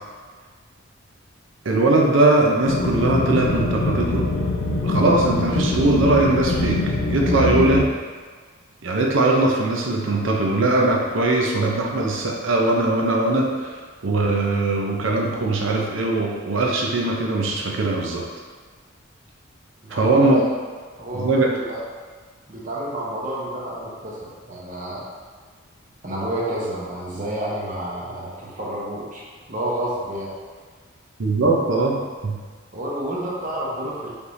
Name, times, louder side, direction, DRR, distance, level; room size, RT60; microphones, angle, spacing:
voice 1, 1.6-4.2 4.8-7.9 8.8-18.2 19.9-20.4 21.1-21.5 31.2-32.4, right 2 dB, 65° right, -1 dB, 0.6 m, -20 dB
sound 1, 2.7-7.8, left 2 dB, 65° left, 0.5 m, -23 dB
voice 2, 19.8-20.5 21.0-21.8 22.5-25.0 26.0-29.2 29.5-30.3 32.7-34.1, right 1 dB, 35° right, -6 dB, 0.9 m, -29 dB
5.2 x 3.2 x 2.6 m, 1.5 s
head